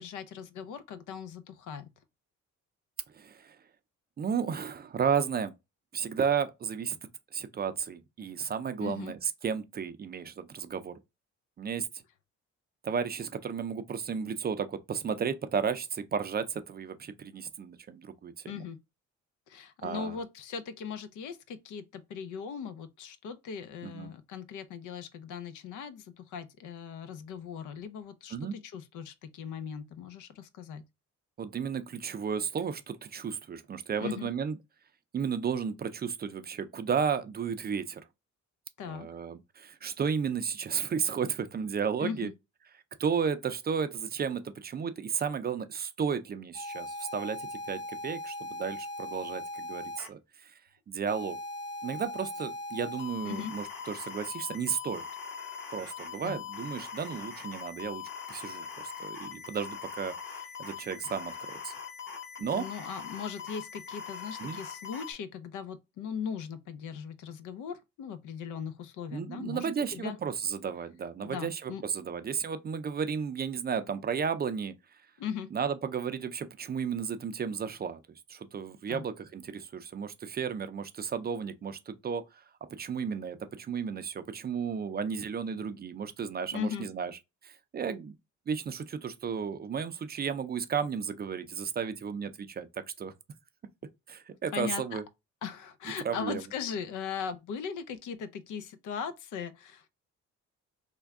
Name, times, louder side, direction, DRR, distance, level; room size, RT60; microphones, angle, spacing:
voice 1, 0.0-1.9 8.8-9.1 18.5-18.8 19.5-30.8 34.0-34.3 38.8-39.1 42.0-42.3 53.2-53.5 56.2-56.4 62.5-70.2 71.2-71.8 75.2-75.5 78.9-79.0 86.5-86.9 94.5-95.0 95.4-99.9, left 7 dB, 80° left, 0.6 m, -39 dB
voice 2, 3.1-3.6 4.2-5.5 5.9-7.0 7.3-10.9 11.6-11.8 12.8-18.6 19.8-20.2 23.8-24.1 28.3-28.5 31.4-34.6 35.1-38.0 38.9-42.3 43.0-50.6 50.9-51.4 51.8-55.1 55.7-58.7 59.0-61.7 62.4-62.7 64.4-64.6 69.1-74.7 75.5-78.0 78.3-82.4 82.7-87.1 87.4-88.2 88.5-92.7 93.0-93.1 94.1-95.0 96.0-96.4, right 6 dB, 30° right, 0.4 m, -33 dB
sound 1, 46.5-50.1 51.1-65.1, left 4 dB, 40° left, 1.2 m, -41 dB
3.4 x 2.2 x 3.5 m
cardioid pair, 90°, 30 cm